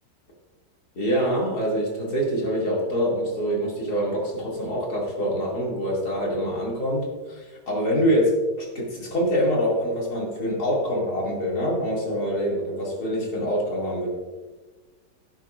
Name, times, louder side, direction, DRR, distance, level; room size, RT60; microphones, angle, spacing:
voice 1, 0.9-14.1, equal, 60° left, -3 dB, 3.1 m, -25 dB
17.0 x 9.1 x 2.6 m, 1.3 s
omnidirectional pair, 1.9 m